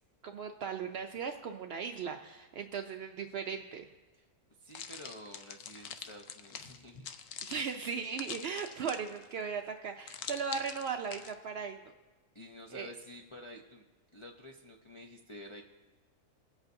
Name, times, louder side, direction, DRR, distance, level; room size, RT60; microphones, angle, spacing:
voice 1, 0.2-3.9 7.5-11.8 12.7-12.9, right 6 dB, 80° right, 4 dB, 0.5 m, -37 dB
voice 2, 4.6-7.1 8.8-8.9 12.3-15.6, left 1 dB, 50° left, -1 dB, 0.3 m, -50 dB
sound 1, 4.7-9.3 10.1-11.3, left 8 dB, 65° left, 0.9 m, -45 dB
22.0 x 8.1 x 2.6 m, 1.2 s
omnidirectional pair, 1.6 m